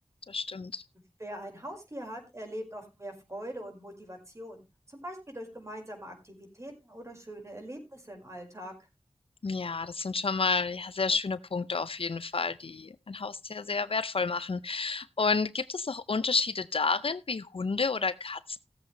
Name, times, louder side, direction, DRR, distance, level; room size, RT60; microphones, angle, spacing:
voice 1, 0.3-0.8 9.4-18.6, left 4 dB, 65° left, 0.6 m, -30 dB
voice 2, 1.2-8.7, equal, 30° right, 5.0 m, -42 dB
17.0 x 7.7 x 3.2 m
wide cardioid pair, 45°, 10 cm